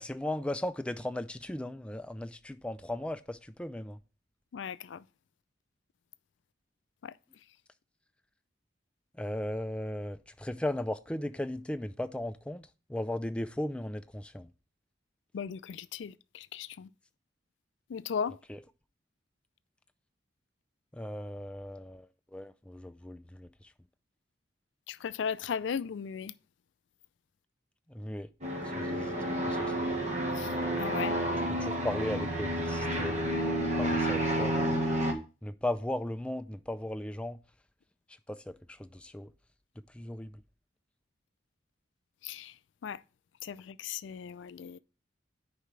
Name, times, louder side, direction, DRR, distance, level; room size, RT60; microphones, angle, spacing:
voice 1, 0.0-4.0 9.2-14.5 18.5-18.6 20.9-23.5 27.9-28.3 28.7-29.1 29.4-30.0 31.5-33.3 33.8-34.8 35.4-37.4 38.3-39.3 39.9-40.3, left 1 dB, 5° left, 0.3 m, -37 dB
voice 2, 4.5-5.0 7.0-7.1 15.3-16.9 17.9-18.4 24.9-26.3 30.4-30.5 30.8-31.1 42.2-42.5 42.8-43.0 43.4-44.8, left 7 dB, 80° left, 0.4 m, -36 dB
sound 1, 28.4-35.1, right 1 dB, 40° right, 1.3 m, -30 dB
10.0 x 4.8 x 3.2 m
head